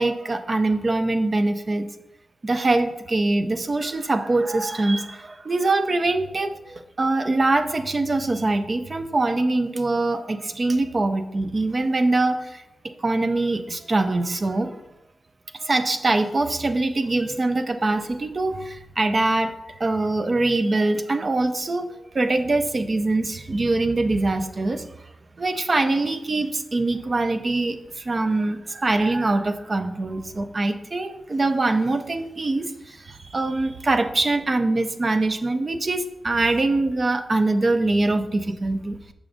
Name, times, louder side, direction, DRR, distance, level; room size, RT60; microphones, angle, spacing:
voice 1, 0.0-1.9 2.4-12.6 13.0-14.8 15.5-21.9 22.1-24.9 25.4-39.0, right 2 dB, 35° right, 8 dB, 0.4 m, -23 dB
6.2 x 6.0 x 2.5 m, 0.89 s
wide cardioid pair, 155°, 0 cm